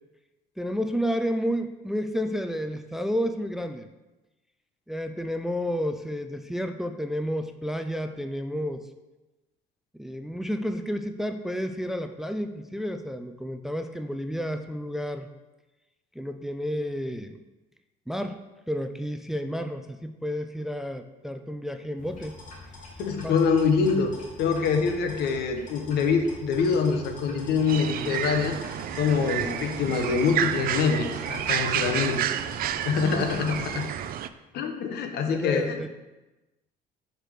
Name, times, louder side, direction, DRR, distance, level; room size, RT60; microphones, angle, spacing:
voice 1, 0.6-3.9 4.9-8.9 9.9-15.3 16.2-17.4 18.1-18.4 18.7-22.4 23.2-23.6 35.2-35.9, equal, ahead, 8 dB, 0.4 m, -31 dB
sound 1, 22.0-34.1, left 2 dB, 55° left, 2.6 m, -44 dB
voice 2, 23.0-24.1 24.4-28.6 28.9-32.2 32.8-33.9 34.5-35.8, left 5 dB, 75° left, 5 dB, 1.1 m, -25 dB
sound 2, 27.7-34.3, right 11 dB, 60° right, 0.4 m, -30 dB
5.9 x 5.0 x 6.5 m, 1.1 s
cardioid pair, 110°, 17 cm